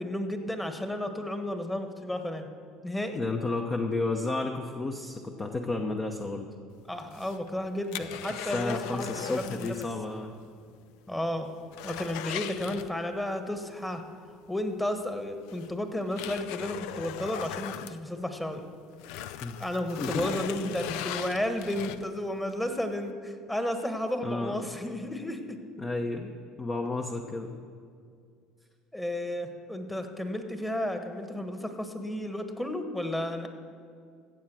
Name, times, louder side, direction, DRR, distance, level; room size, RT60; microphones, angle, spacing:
voice 1, 0.0-2.5 2.8-3.2 6.9-9.8 11.1-11.5 11.8-14.0 14.5-18.6 19.6-25.6 28.9-33.5, left 1 dB, 10° left, 6 dB, 1.4 m, -33 dB
voice 2, 3.1-6.5 8.5-10.3 19.4-19.6 20.0-21.1 24.2-24.5 25.8-26.3 26.6-27.5, left 3 dB, 25° left, 3 dB, 0.9 m, -32 dB
sound 1, 7.0-10.0 10.3-10.4 10.8-10.9 11.3-13.3 14.7-14.8 15.5-18.6 18.9-22.3 22.8-22.9, left 11 dB, 70° left, 0.4 m, -39 dB
15.0 x 7.5 x 6.3 m, 2.3 s
hypercardioid pair, 80°, 0 cm